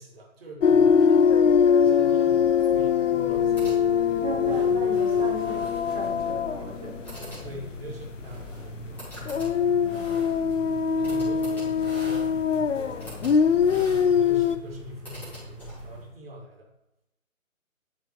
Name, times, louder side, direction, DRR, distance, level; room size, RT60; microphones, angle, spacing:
voice 1, 0.0-1.5 1.8-4.2 7.4-9.2 9.7-10.0 10.9-12.3 12.7-13.2 13.7-16.7, equal, 45° right, -1 dB, 2.1 m, -43 dB
sound 1, 0.6-8.0 8.3-8.5 9.2-14.6, left 7 dB, 60° left, 0.5 m, -22 dB
sound 2, 3.1-16.1, equal, 5° left, 2.1 m, -42 dB
voice 2, 4.2-7.1 9.8-10.1, right 4 dB, 25° right, 0 dB, 1.2 m, -36 dB
10.5 x 4.5 x 3.1 m, 0.89 s
figure-of-eight pair, 145°, 42 cm